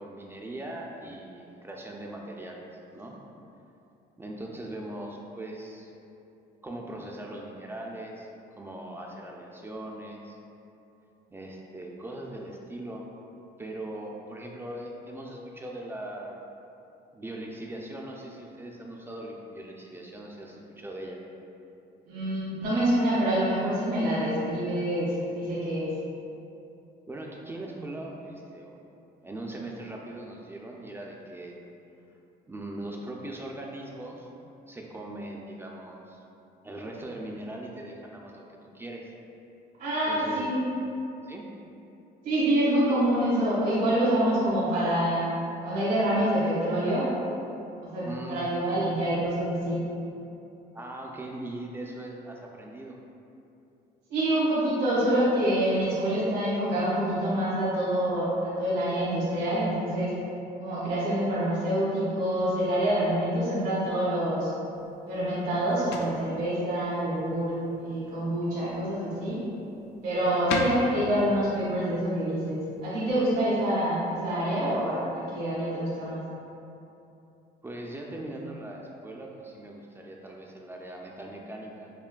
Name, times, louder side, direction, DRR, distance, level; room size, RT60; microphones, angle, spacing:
voice 1, 0.0-3.2 4.2-5.9 6.6-8.3 8.6-10.4 11.3-13.1 13.6-16.4 17.1-21.2 27.1-28.8 29.2-31.6 32.5-34.3 34.7-36.2 36.6-39.1 40.1-40.5 41.2-41.5 48.0-48.4 50.7-53.0 70.4-70.6 77.6-81.9, right 1 dB, 15° right, -1 dB, 0.3 m, -40 dB
voice 2, 22.1-25.9 39.8-40.6 42.2-45.2 45.6-47.1 47.9-49.8 54.1-60.1 60.6-64.5 65.1-69.4 70.0-76.2, right 1 dB, 80° right, -10 dB, 1.5 m, -26 dB
sound 1, 64.7-73.9, left 3 dB, 80° left, 0.4 m, -40 dB
5.6 x 2.2 x 2.2 m, 2.8 s
cardioid pair, 110°, 17 cm